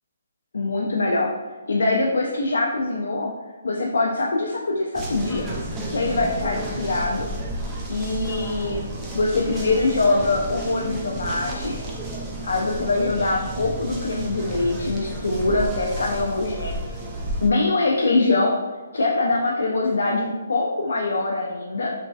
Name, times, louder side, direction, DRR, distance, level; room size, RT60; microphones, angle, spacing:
voice 1, 0.5-1.3 1.7-3.3 3.6-5.5 5.9-7.3 7.9-8.8 9.1-11.8 12.4-16.8 17.4-18.6 18.9-21.9, left 2 dB, 85° left, -1 dB, 0.3 m, -23 dB
sound 1, 4.9-17.5, right 1 dB, 15° right, 0.4 m, -32 dB
3.0 x 2.6 x 2.3 m, 1.3 s
hypercardioid pair, 165°, 0 cm